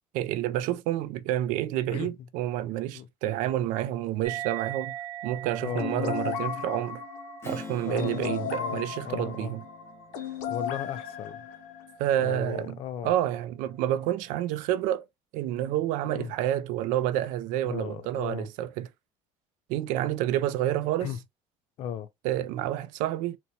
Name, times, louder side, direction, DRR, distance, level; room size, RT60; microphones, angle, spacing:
voice 1, 0.1-4.9 5.2-7.0 7.4-9.6 12.0-15.0 15.3-18.9 19.7-21.1 22.2-23.4, right 13 dB, 70° right, 0.4 m, -29 dB
sound 1, 4.2-11.1, right 12 dB, 35° right, 0.9 m, -42 dB
voice 2, 5.6-6.2 7.8-9.5 10.5-11.4 12.2-13.1 16.1-16.3 17.6-18.5 21.0-21.2 21.8-22.1, left 9 dB, 45° left, 0.4 m, -36 dB
sound 2, 5.7-12.0, left 7 dB, 75° left, 0.8 m, -35 dB
Strum, 7.4-12.3, left 4 dB, 15° left, 0.8 m, -46 dB
4.0 x 2.2 x 2.7 m
cardioid pair, 165°, 14 cm